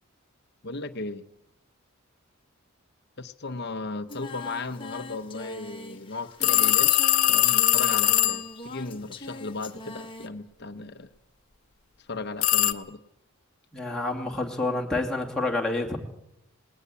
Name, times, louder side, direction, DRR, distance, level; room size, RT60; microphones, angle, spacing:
voice 1, 0.6-1.2 3.2-6.9 7.3-11.1 12.0-13.0, left 3 dB, 50° left, 10 dB, 0.9 m, -36 dB
Singing, 4.1-10.3, left 2 dB, 25° left, 1.5 m, -42 dB
sound 1, 6.4-8.5 12.4-12.7, left 13 dB, 80° left, 1.0 m, -21 dB
voice 2, 13.7-16.0, left 2 dB, 5° left, -2 dB, 2.7 m, -28 dB
19.5 x 18.5 x 8.3 m, 0.83 s
head